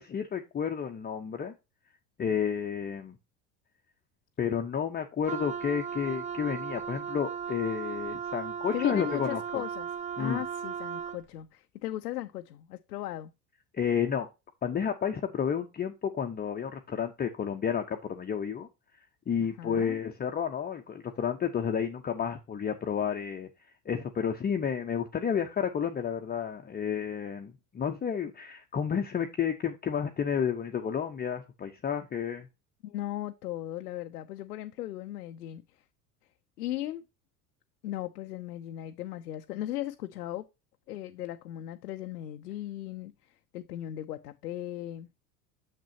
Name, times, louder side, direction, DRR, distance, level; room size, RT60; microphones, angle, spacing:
voice 1, 0.0-1.5 2.2-3.1 4.4-9.6 10.2-10.4 13.7-14.3 14.6-18.7 19.3-23.5 23.9-32.5, left 7 dB, 20° left, 0.7 m, -31 dB
Wind instrument woodwind instrument, 5.2-11.2, right 7 dB, 15° right, 0.5 m, -36 dB
voice 2, 8.7-9.9 10.2-13.3 19.6-20.0 32.8-35.6 36.6-37.0 37.8-40.5 40.9-43.1 43.5-45.1, left 13 dB, 85° left, 0.6 m, -37 dB
6.7 x 6.3 x 2.7 m
hypercardioid pair, 75°, 47 cm